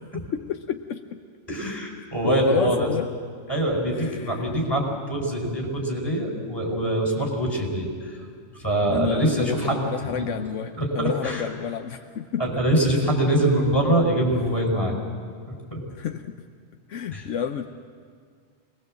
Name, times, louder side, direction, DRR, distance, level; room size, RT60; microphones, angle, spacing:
voice 1, 0.3-1.2 2.2-3.1 3.9-4.5 8.9-12.4 15.9-16.4 16.9-17.7, left 8 dB, 75° left, 7 dB, 1.1 m, -30 dB
voice 2, 1.5-2.9 3.5-8.2 8.6-10.2 10.8-11.4 12.4-15.0 15.5-15.8 17.1-17.2, right 1 dB, 20° left, -1 dB, 4.9 m, -24 dB
24.5 x 20.5 x 7.6 m, 2.1 s
omnidirectional pair, 1.3 m